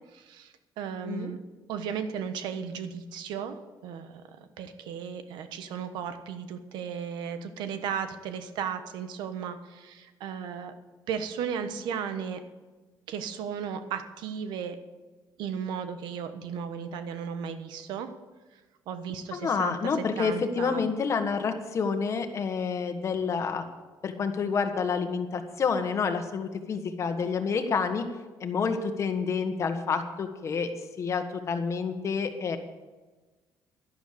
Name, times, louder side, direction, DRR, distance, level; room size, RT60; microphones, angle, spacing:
voice 1, 0.1-1.4 1.7-10.7 11.1-12.4 13.1-14.8 15.4-18.1 18.9-20.8, right 7 dB, 90° right, 9 dB, 1.2 m, -35 dB
voice 2, 19.3-23.6 24.0-28.1 28.4-30.7 31.0-32.6, left 5 dB, 40° left, 7 dB, 1.5 m, -28 dB
11.5 x 11.5 x 6.9 m, 1.2 s
cardioid pair, 120°, 7 cm